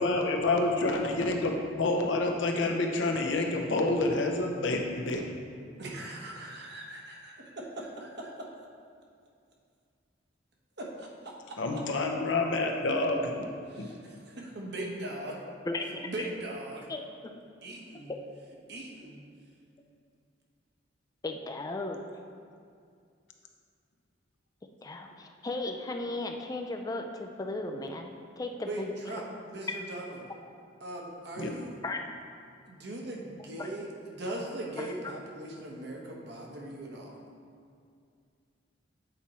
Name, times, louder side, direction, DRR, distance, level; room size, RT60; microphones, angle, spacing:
voice 1, 0.0-5.2 11.6-13.5 13.8-13.9 31.4-31.5, left 2 dB, 75° left, 2 dB, 0.8 m, -28 dB
voice 2, 5.8-8.5 10.8-11.1 11.5-11.6 13.7-15.4 16.0-16.9 17.6-18.1 18.7-19.2 28.6-30.3 30.8-31.8 32.7-37.2, right 1 dB, 60° right, -1 dB, 1.1 m, -40 dB
voice 3, 15.7-16.3 16.9-17.0 18.1-18.2 21.2-22.1 24.8-28.9 31.8-32.0 33.6-33.7 34.8-34.9, left 2 dB, 20° left, 3 dB, 0.4 m, -36 dB
8.2 x 4.2 x 4.3 m, 2.3 s
head